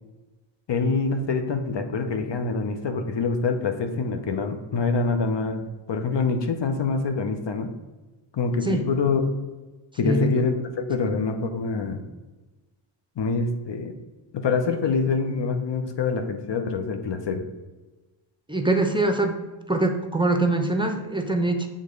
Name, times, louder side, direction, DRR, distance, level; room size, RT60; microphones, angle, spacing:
voice 1, 0.7-5.6 5.9-7.7 8.3-9.3 10.0-12.0 13.2-13.9 14.3-17.4, left 4 dB, 60° left, 6 dB, 0.9 m, -25 dB
voice 2, 10.0-10.3 18.5-19.4 19.7-21.7, right 2 dB, 10° right, 5 dB, 0.9 m, -23 dB
6.4 x 3.7 x 5.2 m, 1.2 s
cardioid pair, 50°, 49 cm